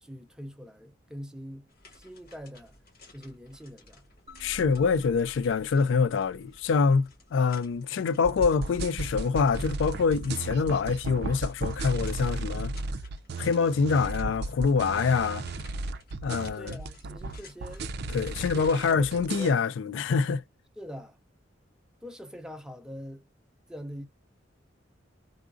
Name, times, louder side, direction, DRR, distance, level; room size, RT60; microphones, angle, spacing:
voice 1, 0.0-1.7 1.9-2.7 3.1-4.0 16.5-17.9 18.5-19.5 20.8-21.2 22.0-23.2 23.7-24.1, equal, 5° right, 0.6 m, -43 dB
sound 1, 1.7-19.4, left 3 dB, 50° left, 1.7 m, -57 dB
sound 2, 4.3-7.3, equal, 35° right, 0.9 m, -49 dB
voice 2, 4.4-12.7 13.4-15.4 16.2-16.8 18.1-20.4, left 5 dB, 70° left, 0.3 m, -25 dB
sound 3, 8.2-19.5, right 3 dB, 55° right, 0.4 m, -35 dB
3.9 x 2.4 x 2.5 m
head